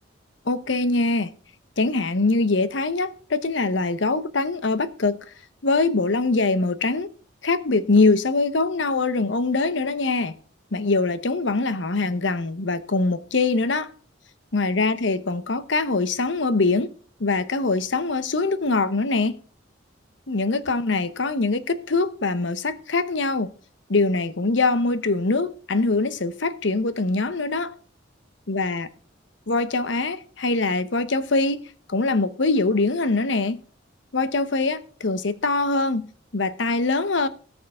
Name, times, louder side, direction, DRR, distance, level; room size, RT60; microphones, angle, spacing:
voice 1, 0.5-1.3 1.8-5.2 5.6-7.1 7.4-10.3 10.7-13.9 14.5-16.9 17.2-19.4 20.3-23.5 23.9-27.7 28.5-28.9 29.5-31.6 31.9-33.6 34.1-36.1 36.3-37.3, left 3 dB, 65° left, 0.9 m, -23 dB
18.0 x 6.5 x 3.7 m
head